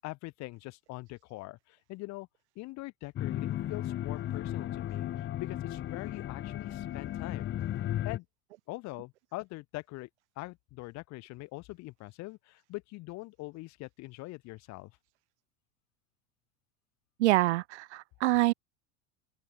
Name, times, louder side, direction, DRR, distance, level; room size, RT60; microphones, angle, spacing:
voice 1, 0.0-2.3 2.5-7.6 8.0-8.2 8.7-10.1 10.4-14.9, left 21 dB, 55° left, 6.7 m, -43 dB
sound 1, 3.2-8.2, left 12 dB, 35° left, 1.6 m, -35 dB
voice 2, 17.2-18.5, right 18 dB, 85° right, 1.2 m, -26 dB
open air
supercardioid pair, 125°, 33 cm